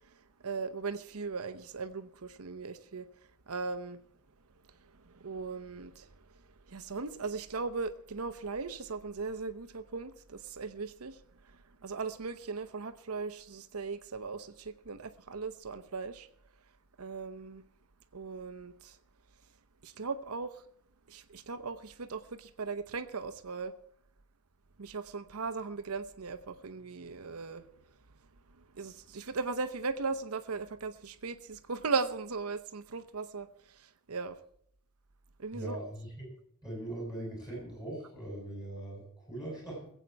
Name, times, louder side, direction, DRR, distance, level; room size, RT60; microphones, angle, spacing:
voice 1, 0.4-3.1 3.5-4.0 5.0-6.1 6.7-11.2 11.4-16.3 17.0-17.6 18.1-19.0 19.8-20.6 21.1-23.7 24.8-27.7 28.7-34.4 35.4-35.8, right 4 dB, 90° right, 0.9 m, -38 dB
voice 2, 35.5-36.3 36.6-39.9, right 1 dB, 20° left, 7.7 m, -41 dB
21.0 x 8.2 x 4.6 m
head